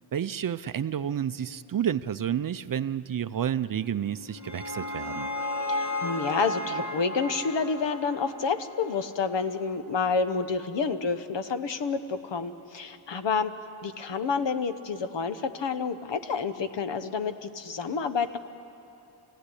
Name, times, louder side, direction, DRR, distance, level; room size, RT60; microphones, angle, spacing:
voice 1, 0.1-5.3, right 9 dB, 45° right, 13 dB, 0.5 m, -30 dB
sound 1, 4.1-9.2, left 1 dB, 35° left, 1.6 m, -34 dB
voice 2, 5.7-13.5 13.8-18.4, left 5 dB, 65° left, 10 dB, 1.1 m, -29 dB
27.0 x 16.5 x 9.9 m, 2.8 s
wide cardioid pair, 155°, 47 cm